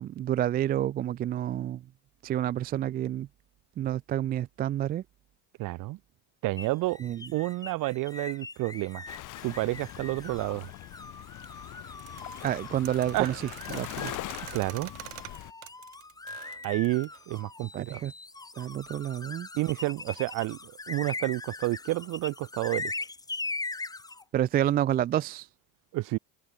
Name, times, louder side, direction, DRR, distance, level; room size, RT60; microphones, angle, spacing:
voice 1, 0.0-1.8 2.2-3.3 3.8-5.0 7.0-7.2 12.4-13.3 13.7-14.1 17.7-18.1 18.6-19.5 24.3-25.5, right 11 dB, 20° right, 0.4 m, -29 dB
voice 2, 5.6-6.0 6.4-7.0 7.3-9.1 9.4-10.7 13.1-13.4 14.5-14.9 16.6-18.1 19.5-22.9 25.9-26.2, right 20 dB, 45° right, 1.1 m, -30 dB
sound 1, 6.6-24.2, left 3 dB, 10° left, 2.3 m, -41 dB
Waves surf, 9.1-15.5, left 17 dB, 45° left, 1.8 m, -42 dB
sound 2, 12.0-17.2, right 35 dB, 80° right, 3.6 m, -46 dB
cardioid pair, 165°, 45 cm